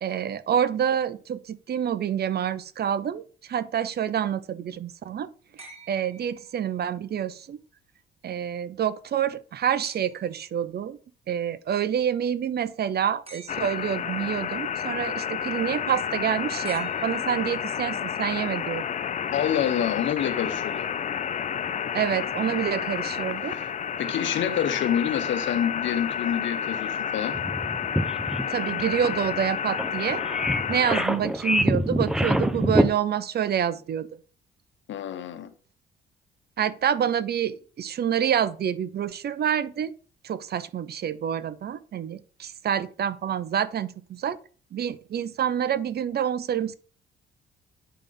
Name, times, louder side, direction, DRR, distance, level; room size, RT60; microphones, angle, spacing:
voice 1, 0.0-5.3 5.6-7.6 8.2-11.0 11.3-18.8 21.9-23.6 28.5-30.2 30.7-34.1 36.6-39.9 40.2-44.4 44.7-46.8, right 9 dB, 55° right, 0.7 m, -27 dB
sound 1, 5.6-7.0 9.8-10.4 13.3-14.1 16.6-17.7 19.3-19.4, right 4 dB, 30° right, 2.0 m, -48 dB
sound 2, 13.5-31.1, left 8 dB, 40° left, 0.4 m, -30 dB
voice 2, 19.3-20.9 23.5-23.7 24.0-27.4 34.9-35.5, left 9 dB, 70° left, 1.0 m, -27 dB
sound 3, 27.3-32.9, equal, 5° right, 0.7 m, -25 dB
8.9 x 3.5 x 5.3 m
cardioid pair, 90°, 20 cm